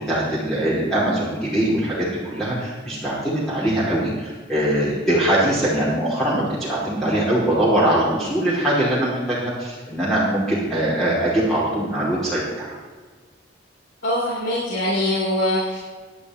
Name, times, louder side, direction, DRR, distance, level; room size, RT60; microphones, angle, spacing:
voice 1, 0.1-12.8, right 1 dB, ahead, -9 dB, 2.7 m, -22 dB
voice 2, 14.0-15.8, left 1 dB, 75° left, -8 dB, 3.8 m, -22 dB
17.5 x 11.0 x 3.1 m, 1.4 s
head